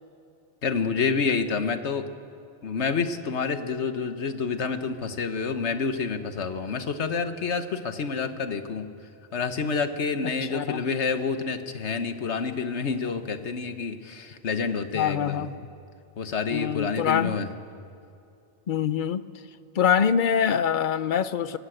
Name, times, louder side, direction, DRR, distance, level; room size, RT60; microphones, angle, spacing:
voice 1, 0.6-2.1 2.6-8.9 9.3-15.5 16.2-17.5, left 5 dB, 75° left, 9 dB, 1.4 m, -28 dB
voice 2, 10.2-10.8 14.9-15.5 16.5-17.3 18.7-19.2 19.7-21.6, left 8 dB, 50° left, 14 dB, 0.8 m, -24 dB
25.0 x 18.0 x 7.9 m, 2.5 s
omnidirectional pair, 1.2 m